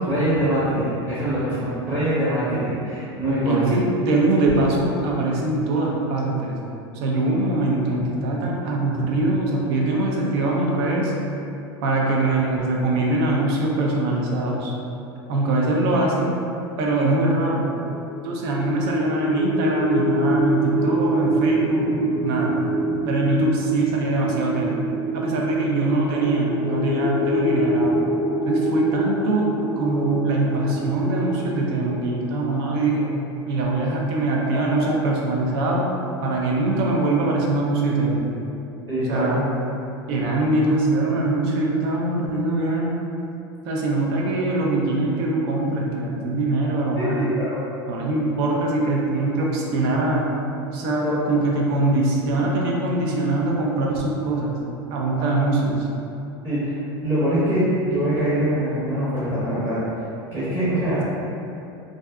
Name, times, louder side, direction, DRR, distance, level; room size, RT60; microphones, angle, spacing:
voice 1, 0.0-3.6 34.8-34.9 38.9-39.4 46.9-47.6 51.0-51.2 56.4-59.8 60.3-61.0, right 1 dB, 15° right, -12 dB, 0.8 m, -23 dB
voice 2, 3.5-6.6 7.0-11.1 11.8-14.7 15.3-16.3 16.8-17.7 18.2-22.5 23.1-24.8 25.1-28.0 28.4-29.5 29.8-33.1 33.5-35.8 36.2-38.3 39.1-39.4 40.1-42.9 43.6-47.3 47.9-50.3 50.7-54.6 54.9-55.9, right 2 dB, 70° right, -2 dB, 0.5 m, -22 dB
sound 1, 17.9-32.9, right 1 dB, 10° left, 0.5 m, -25 dB
2.5 x 2.4 x 2.2 m, 2.7 s
hypercardioid pair, 105°, 14 cm